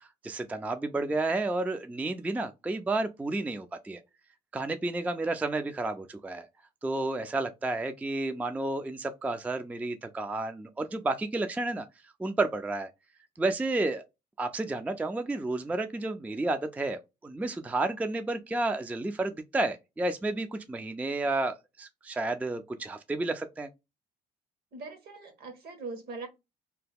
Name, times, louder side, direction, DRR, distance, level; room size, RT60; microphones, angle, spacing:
voice 1, 0.0-4.0 4.5-6.5 6.8-11.9 12.2-12.9 13.4-14.0 14.4-23.7, right 2 dB, 10° right, 0.3 m, -31 dB
voice 2, 24.7-26.3, right 3 dB, 60° right, 1.3 m, -41 dB
2.8 x 2.2 x 3.4 m
cardioid pair, 100°, 18 cm